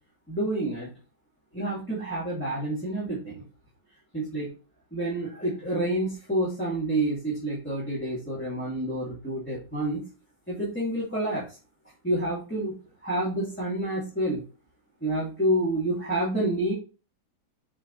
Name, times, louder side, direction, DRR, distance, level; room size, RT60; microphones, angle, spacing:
voice 1, 0.3-0.9 1.5-3.4 4.1-4.5 4.9-10.0 10.5-11.4 12.0-12.8 13.0-14.4 15.0-16.7, right 1 dB, 5° left, -9 dB, 2.8 m, -28 dB
7.8 x 4.6 x 4.2 m, 0.34 s
omnidirectional pair, 2.2 m